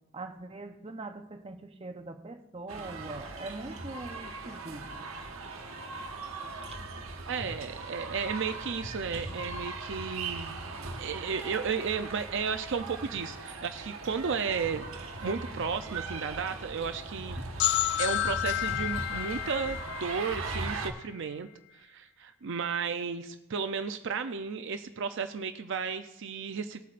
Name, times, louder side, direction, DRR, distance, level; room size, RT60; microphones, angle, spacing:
voice 1, 0.1-4.9, right 2 dB, 30° right, 0.8 m, -42 dB
sound 1, 2.7-20.9, right 3 dB, 85° right, 1.3 m, -39 dB
voice 2, 7.3-10.6 11.0-14.9 15.2-17.4 18.0-21.5 21.7-26.8, right 5 dB, 65° right, 0.5 m, -33 dB
sound 2, 17.6-21.2, left 14 dB, 55° left, 0.4 m, -31 dB
19.0 x 8.3 x 2.5 m
head